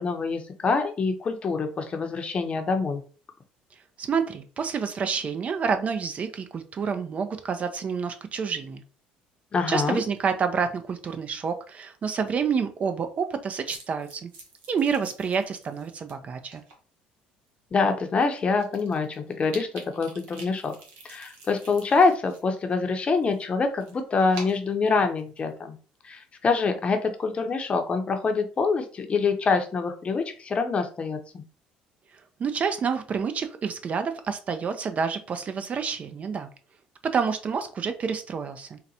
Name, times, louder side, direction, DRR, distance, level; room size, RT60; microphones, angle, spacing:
voice 1, 0.0-3.0 9.5-10.0 17.7-20.7 21.0-25.8 26.0-31.4, left 4 dB, 35° left, 6 dB, 0.7 m, -25 dB
voice 2, 4.0-8.8 9.7-14.3 14.7-16.6 32.4-36.5 37.0-38.8, right 6 dB, 40° right, 8 dB, 0.5 m, -28 dB
sound 1, 13.7-16.1 16.5-16.8 17.5-17.6 17.9-18.0 18.2-22.4 22.7-25.5, right 3 dB, 75° right, 0.9 m, -46 dB
3.9 x 2.1 x 2.7 m, 0.38 s
supercardioid pair, 80°, 3 cm